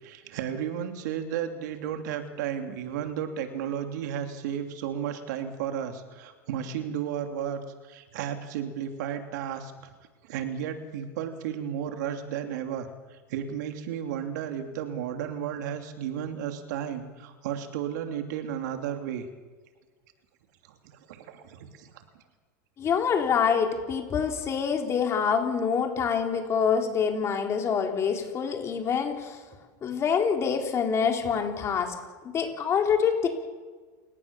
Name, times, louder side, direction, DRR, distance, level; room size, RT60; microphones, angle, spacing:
voice 1, 0.0-9.9 10.2-19.3 20.7-22.2, right 9 dB, 75° right, 6 dB, 3.0 m, -33 dB
voice 2, 22.8-29.4 29.8-31.9 32.2-33.3, left 6 dB, 30° left, 3 dB, 4.0 m, -26 dB
29.0 x 18.0 x 7.1 m, 1.4 s
supercardioid pair, 135°, 10 cm